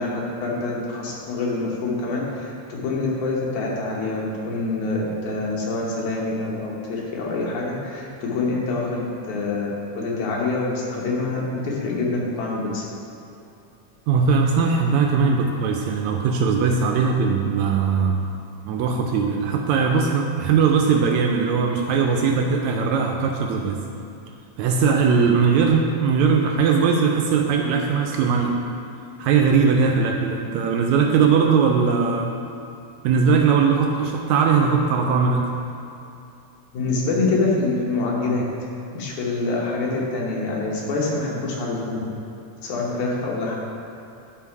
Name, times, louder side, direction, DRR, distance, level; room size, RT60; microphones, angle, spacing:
voice 1, 0.0-12.9 36.7-38.5 38.9-42.0 42.6-43.6, left 3 dB, 75° left, -3 dB, 2.5 m, -26 dB
voice 2, 14.1-18.2 18.7-23.8 24.6-28.5 29.2-32.3 33.0-35.5, right 5 dB, 80° right, 2 dB, 1.7 m, -20 dB
11.0 x 3.7 x 4.6 m, 2.7 s
omnidirectional pair, 3.5 m